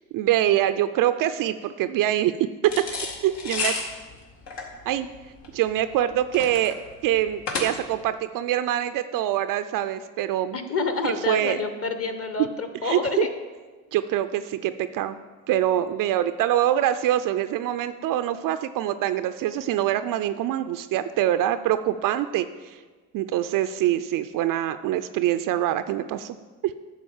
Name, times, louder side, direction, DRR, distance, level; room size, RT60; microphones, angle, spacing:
voice 1, 0.1-2.3 3.2-3.7 4.9-5.1 5.5-6.7 7.0-10.6 11.0-11.6 12.8-13.3 13.9-15.2 15.5-22.8 23.1-26.4 26.6-26.7, right 12 dB, 45° right, 11 dB, 0.5 m, -24 dB
sound 1, 2.6-8.1, left 4 dB, 65° left, 2.0 m, -32 dB
voice 2, 10.5-13.3, left 3 dB, 30° left, 8 dB, 1.2 m, -28 dB
11.0 x 4.0 x 7.2 m, 1.3 s
hypercardioid pair, 80°, 46 cm